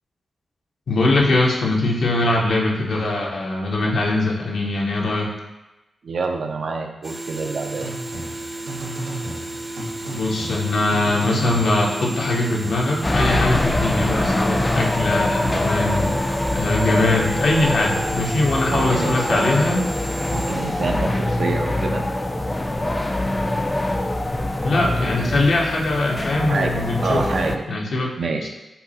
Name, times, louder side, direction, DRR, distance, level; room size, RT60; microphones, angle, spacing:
voice 1, 0.9-5.3 10.1-16.1 16.5-19.8 24.6-27.2 27.7-28.1 28.4-28.5, left 2 dB, 75° left, -1 dB, 0.8 m, -21 dB
voice 2, 6.0-7.9 18.7-19.6 20.3-22.0 26.5-27.6 28.2-28.5, right 4 dB, 70° right, 4 dB, 0.5 m, -27 dB
sound 1, 7.0-22.2, right 2 dB, 20° right, 0.6 m, -34 dB
sound 2, 7.7-13.2, right 2 dB, 90° right, 1.3 m, -34 dB
sound 3, 13.0-27.6, left 1 dB, 20° left, 0.3 m, -24 dB
5.6 x 2.0 x 4.1 m, 1.0 s
cardioid pair, 70°, 0 cm